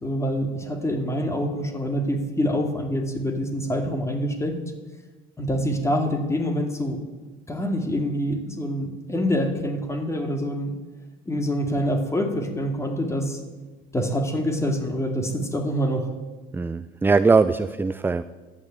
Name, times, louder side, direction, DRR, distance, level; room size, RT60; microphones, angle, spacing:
voice 1, 0.0-4.6 5.4-7.0 7.5-10.7 11.3-13.4 13.9-16.1, equal, 15° left, 5 dB, 2.5 m, -26 dB
voice 2, 16.5-18.2, right 4 dB, 10° right, 13 dB, 0.4 m, -20 dB
12.5 x 9.2 x 8.8 m, 1.2 s
cardioid pair, 105°, 17 cm